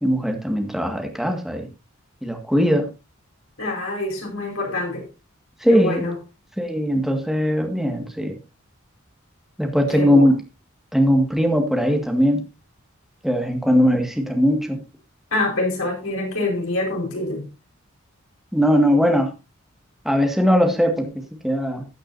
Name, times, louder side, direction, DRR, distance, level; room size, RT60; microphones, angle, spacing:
voice 1, 0.0-1.7 2.2-2.9 5.6-6.1 6.6-8.4 9.6-10.4 10.9-12.4 13.2-14.8 18.5-19.3 20.1-21.9, equal, ahead, 1.9 m, -20 dB
voice 2, 3.6-5.0 5.7-6.1 9.9-10.3 15.3-17.5, left 2 dB, 80° left, 5.0 m, -25 dB
15.5 x 8.6 x 2.7 m
head